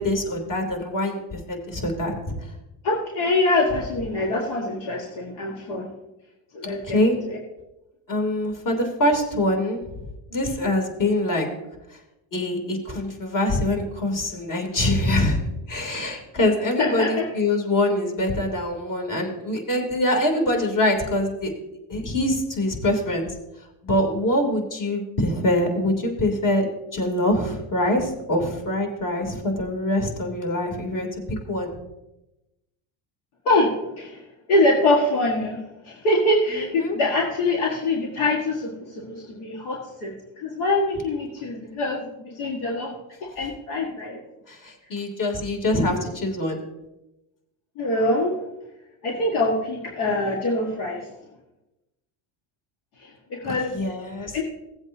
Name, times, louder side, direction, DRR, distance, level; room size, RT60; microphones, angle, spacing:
voice 1, 0.0-2.1 6.6-7.1 8.1-9.8 10.3-11.5 11.9-12.0 12.3-15.4 15.7-21.5 21.9-23.3 23.8-31.7 36.5-37.0 44.5-46.6 53.4-54.4, left 1 dB, 45° left, 2 dB, 3.2 m, -24 dB
voice 2, 2.8-5.9 6.5-7.0 7.3-7.4 16.8-17.3 33.5-34.2 34.5-42.9 43.2-44.2 45.8-46.0 47.8-48.3 49.0-51.1 53.0-53.8 54.3-54.4, left 2 dB, 85° left, -1 dB, 1.8 m, -24 dB
17.0 x 8.0 x 2.8 m, 0.95 s
supercardioid pair, 100°, 43 cm